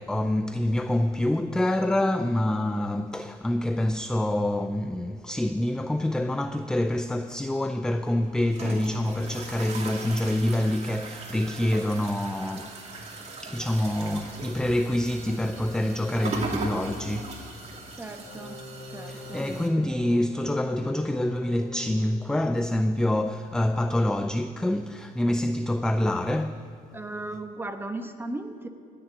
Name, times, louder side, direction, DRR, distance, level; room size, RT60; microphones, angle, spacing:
voice 1, 0.0-12.8 13.4-17.6 19.1-26.6, left 1 dB, 5° left, 0.4 m, -26 dB
sound 1, 8.0-19.7, right 3 dB, 40° right, 2.4 m, -39 dB
voice 2, 18.0-18.6 18.9-19.5 26.9-28.7, right 2 dB, 15° right, 1.1 m, -36 dB
sound 2, 18.2-22.1, left 2 dB, 60° left, 2.0 m, -41 dB
17.5 x 6.8 x 10.0 m
cardioid pair, 110°, 17 cm